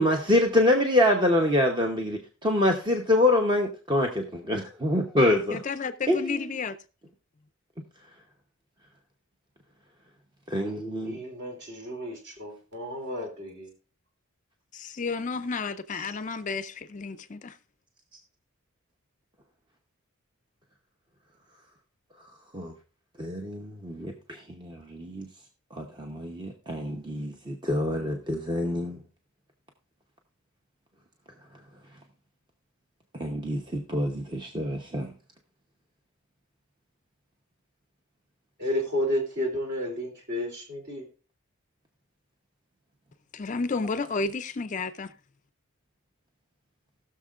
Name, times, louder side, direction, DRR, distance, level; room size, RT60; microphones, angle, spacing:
voice 1, 0.0-5.6 6.1-6.4 10.5-11.2 22.5-22.7 23.2-25.3 25.7-29.0 33.2-35.1, left 1 dB, 20° right, 0.8 m, -26 dB
voice 2, 5.5-6.8 14.7-17.6 43.3-45.1, left 4 dB, 35° left, 0.4 m, -32 dB
voice 3, 11.0-13.7 38.6-41.0, equal, 50° right, 2.9 m, -32 dB
19.0 x 6.5 x 2.4 m
head